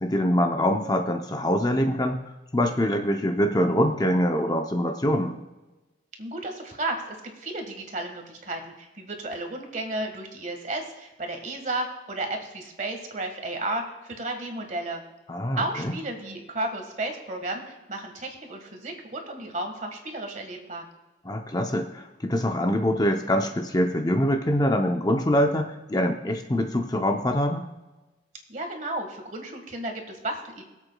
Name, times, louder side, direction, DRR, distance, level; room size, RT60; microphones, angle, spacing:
voice 1, 0.0-2.2 2.5-5.4 15.3-16.0 21.2-27.7, equal, 20° left, 3 dB, 0.6 m, -24 dB
voice 2, 6.2-15.0 15.6-20.9 28.5-30.6, right 2 dB, 40° right, 4 dB, 1.6 m, -33 dB
22.5 x 7.9 x 2.3 m, 1.1 s
head